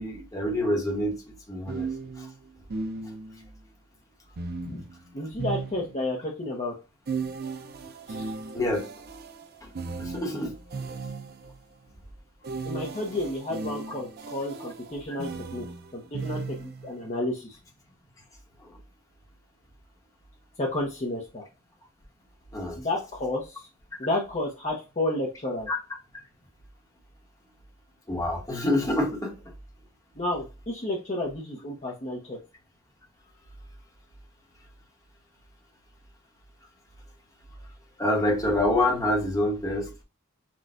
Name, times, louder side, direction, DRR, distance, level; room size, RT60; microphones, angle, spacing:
voice 1, 0.0-1.9 2.2-2.3 8.5-8.9 9.6-9.7 10.0-10.6 22.5-22.8 25.7-25.8 28.1-29.4 38.0-40.0, left 1 dB, 15° left, 1.1 m, -26 dB
sound 1, 0.7-0.8 1.7-3.5 4.4-6.3 7.1-11.6 12.4-16.9, right 4 dB, 45° right, 0.5 m, -36 dB
voice 2, 5.1-6.7 8.1-8.2 8.6-8.7 10.3-10.5 12.6-15.7 15.9-17.6 20.6-21.4 22.8-23.7 24.0-25.7 30.2-32.4, left 1 dB, 30° left, 0.8 m, -31 dB
6.0 x 2.3 x 2.5 m
head